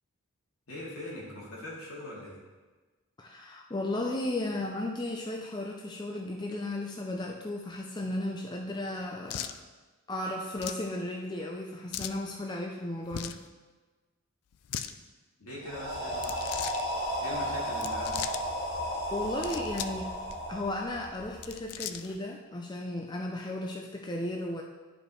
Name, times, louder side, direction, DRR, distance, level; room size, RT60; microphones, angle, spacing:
voice 1, 0.7-2.4 15.4-16.4 17.2-18.2, left 1 dB, 75° left, -5 dB, 2.3 m, -41 dB
voice 2, 3.2-9.6 10.1-13.4 19.1-20.1 20.5-24.6, left 1 dB, 20° left, 0 dB, 0.4 m, -35 dB
sound 1, 9.3-9.6 10.6-10.9 11.9-12.2 13.1-13.4 14.5-14.9 16.1-16.8 17.7-18.4 19.2-20.0 20.3-20.4 21.3-22.2, left 10 dB, 90° left, 0.4 m, -38 dB
sound 2, 15.6-21.5, equal, 40° left, 2.5 m, -34 dB
11.0 x 5.1 x 3.1 m, 1.3 s
head